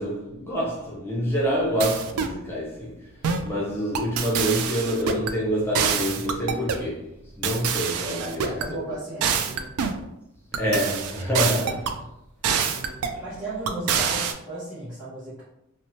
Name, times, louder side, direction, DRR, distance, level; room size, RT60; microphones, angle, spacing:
voice 1, 0.0-3.1 3.4-8.8 10.6-11.9 13.1-13.2, equal, 10° left, 0.6 m, -27 dB
sound 1, 1.8-2.4 3.2-3.5 3.9-5.3 5.7-6.9 7.4-8.7 9.2-10.0 10.5-12.0 12.4-13.2 13.7-14.3, right 6 dB, 80° right, 0.3 m, -26 dB
voice 2, 8.2-9.6 13.2-15.4, right 2 dB, 10° right, 1.0 m, -35 dB
2.9 x 2.1 x 2.7 m
head